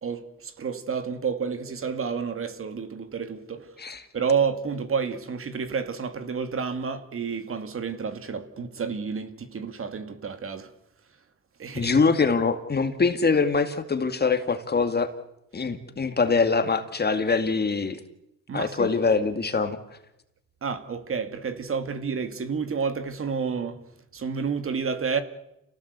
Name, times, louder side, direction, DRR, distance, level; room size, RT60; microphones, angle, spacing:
voice 1, 0.0-3.7 4.1-10.7 11.6-11.9 18.5-18.9 20.6-23.8 24.1-25.2, right 6 dB, 45° right, 2.3 m, -30 dB
voice 2, 11.7-15.1 15.5-18.0 18.5-19.8, left 4 dB, 35° left, 2.3 m, -23 dB
28.5 x 17.5 x 8.3 m
cardioid pair, 90°, 30 cm